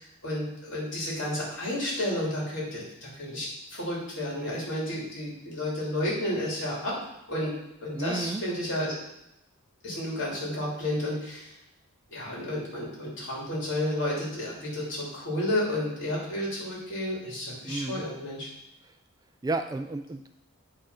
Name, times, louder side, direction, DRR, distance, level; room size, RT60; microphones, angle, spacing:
voice 1, 0.0-6.9 7.3-7.5 7.8-8.9 9.8-11.5 12.1-18.5, left 1 dB, 60° left, -4 dB, 2.9 m, -31 dB
voice 2, 7.9-8.4 17.6-18.0 19.4-20.3, right 2 dB, 15° right, 8 dB, 0.3 m, -32 dB
9.0 x 3.7 x 5.5 m, 0.83 s
head